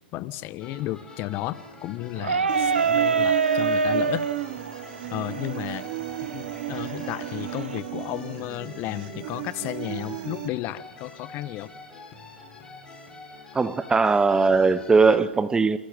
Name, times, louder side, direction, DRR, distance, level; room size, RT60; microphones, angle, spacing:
voice 1, 0.0-4.3 5.1-5.8 6.3-11.7, left 15 dB, 40° left, 16 dB, 1.4 m, -33 dB
sound 1, 0.6-15.2, left 3 dB, 10° left, 8.0 m, -46 dB
sound 2, 2.2-7.8, right 5 dB, 90° right, 1.4 m, -26 dB
Human voice, 2.5-10.5, right 19 dB, 50° right, 1.3 m, -34 dB
voice 2, 13.5-15.8, right 4 dB, 10° right, 15 dB, 1.2 m, -20 dB
29.0 x 28.5 x 5.3 m, 0.96 s
hypercardioid pair, 115°, 6 cm